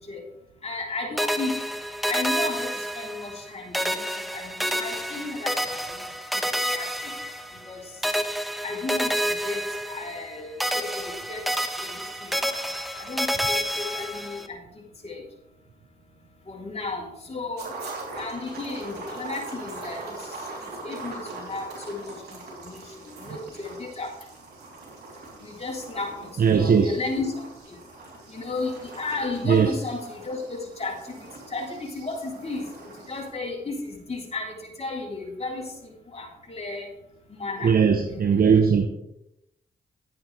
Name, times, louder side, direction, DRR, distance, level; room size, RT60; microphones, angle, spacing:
voice 1, 0.6-1.6 2.0-2.7 3.0-4.0 4.3-5.5 6.4-6.5 6.7-6.9 7.6-7.8 8.6-9.2 9.4-9.6 9.9-11.4 11.8-12.0 13.0-14.6 15.0-15.2 16.5-17.7 18.2-20.1 20.8-24.1 25.4-27.4 28.3-31.1 31.5-36.9 37.3-37.7 38.0-38.4, left 3 dB, 40° left, 3.5 m, -34 dB
sound 1, 1.2-3.5 3.7-7.7 8.0-10.3 10.6-14.5, equal, ahead, 1.1 m, -29 dB
sound 2, 17.6-33.3, right 3 dB, 80° right, 3.4 m, -41 dB
voice 2, 26.4-27.0 29.5-29.7 37.6-38.9, right 6 dB, 65° right, 0.9 m, -19 dB
12.0 x 9.3 x 3.4 m
cardioid pair, 60°, 17 cm